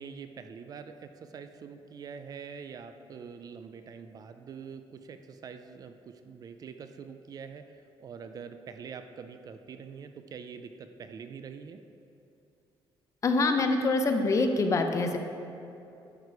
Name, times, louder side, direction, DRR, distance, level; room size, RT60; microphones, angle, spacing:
voice 1, 0.0-11.8, right 6 dB, 40° right, 9 dB, 0.5 m, -45 dB
voice 2, 13.2-15.2, left 3 dB, 35° left, 5 dB, 0.7 m, -25 dB
11.0 x 6.7 x 4.7 m, 2.8 s
cardioid pair, 145°, 9 cm